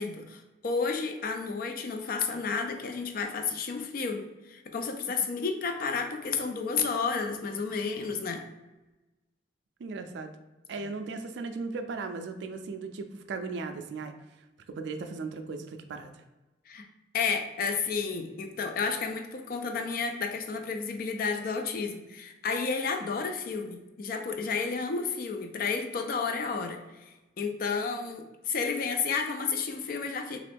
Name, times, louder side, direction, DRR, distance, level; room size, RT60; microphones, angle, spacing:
voice 1, 0.0-8.5 16.7-16.9 17.1-30.4, left 5 dB, 45° left, 6 dB, 0.3 m, -31 dB
voice 2, 9.8-10.3 10.7-16.2, right 4 dB, 65° right, 8 dB, 0.3 m, -37 dB
2.9 x 2.4 x 3.4 m, 1.1 s
head